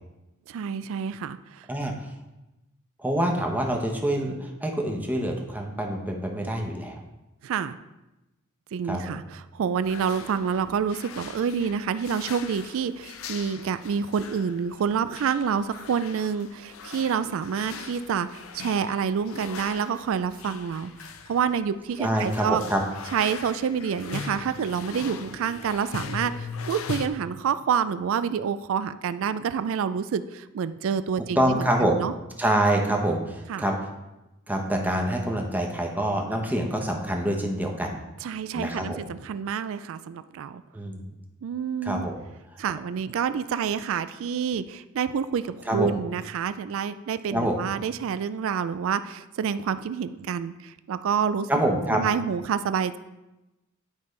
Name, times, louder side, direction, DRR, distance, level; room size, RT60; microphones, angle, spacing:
voice 1, 0.5-1.7 7.4-7.8 8.7-22.6 23.1-32.1 33.5-33.6 38.2-40.6 41.4-42.0 42.6-51.5 51.9-53.0, right 7 dB, 65° right, 13 dB, 0.3 m, -28 dB
voice 2, 3.0-7.0 8.9-9.2 22.0-22.8 31.4-32.0 32.4-33.9 34.5-38.0 38.5-39.0 40.7-41.0 41.8-42.1 45.7-45.9 47.3-47.6 51.5-52.0, right 1 dB, 10° right, 1 dB, 0.9 m, -26 dB
sound 1, 9.8-27.1, left 5 dB, 70° left, 0.5 m, -40 dB
10.0 x 5.2 x 3.2 m, 0.99 s
head